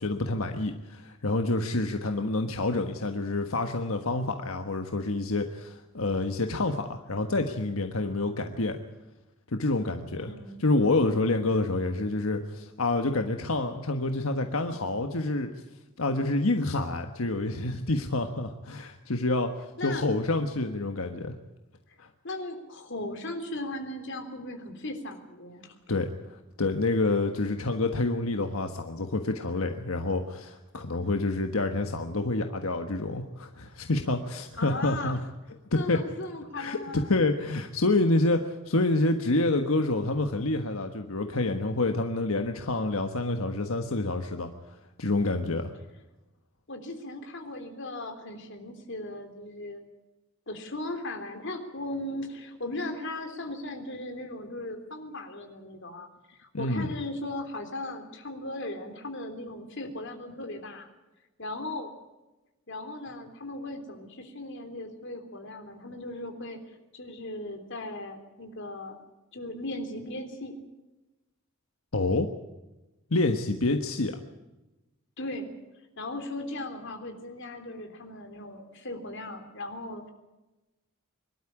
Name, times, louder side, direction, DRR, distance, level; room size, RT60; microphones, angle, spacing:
voice 1, 0.0-8.8 9.5-10.3 10.6-15.5 16.0-21.3 22.0-22.1 25.9-26.1 26.6-35.2 35.7-36.0 36.6-45.7 56.5-56.9 71.9-72.3 73.1-74.2, left 2 dB, 90° left, 5 dB, 1.4 m, -28 dB
voice 2, 10.2-10.7 19.8-20.1 21.9-22.0 22.2-25.7 34.6-35.2 35.7-37.1 46.7-49.8 50.5-60.9 61.4-61.9 62.7-69.0 69.3-70.6 75.2-75.5 76.0-80.1, left 1 dB, 60° left, 5 dB, 3.5 m, -37 dB
24.0 x 12.5 x 10.0 m, 1.1 s
head